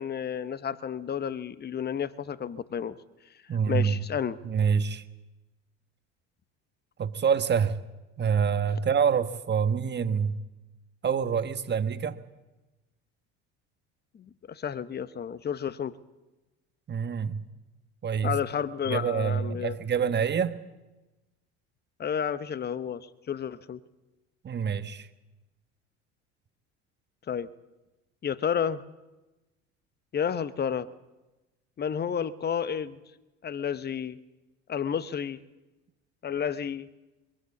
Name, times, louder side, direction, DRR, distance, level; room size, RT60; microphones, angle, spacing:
voice 1, 0.0-2.9 3.7-4.4 14.1-15.9 18.2-19.8 22.0-23.8 27.3-27.5 28.2-28.8 30.1-30.9 31.8-33.0 33.4-34.2 34.7-35.4 36.2-36.9, left 8 dB, 30° left, 15 dB, 0.9 m, -31 dB
voice 2, 3.5-4.0 4.4-5.0 7.0-7.8 8.2-10.4 11.0-12.2 16.9-17.4 18.0-18.3 18.9-20.6 24.4-25.1, right 7 dB, 30° right, 11 dB, 1.2 m, -26 dB
21.5 x 15.5 x 8.3 m, 1.1 s
hypercardioid pair, 75°, 33 cm